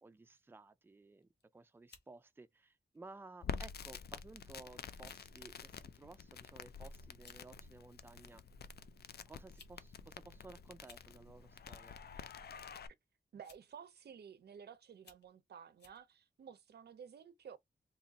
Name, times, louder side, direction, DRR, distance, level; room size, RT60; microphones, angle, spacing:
voice 1, 0.0-8.4 9.3-12.0, right 3 dB, 15° right, 0.3 m, -56 dB
sound 1, 1.2-1.4 1.9-2.1 2.9-3.1 3.8-4.0 4.3-4.4 4.9-5.3 5.8-6.1 6.8-6.9 7.2-7.4 8.5-8.6 9.4-9.8 10.0-10.1 10.7-11.1 12.3-12.6 13.4-13.8 14.3-14.4 14.9-15.3 15.8-16.0, left 5 dB, 90° left, 1.0 m, -62 dB
Crackle, 3.4-12.9, left 6 dB, 70° left, 0.4 m, -48 dB
voice 2, 13.3-17.6, right 7 dB, 75° right, 0.5 m, -53 dB
3.0 x 2.4 x 3.9 m
wide cardioid pair, 150°, 17 cm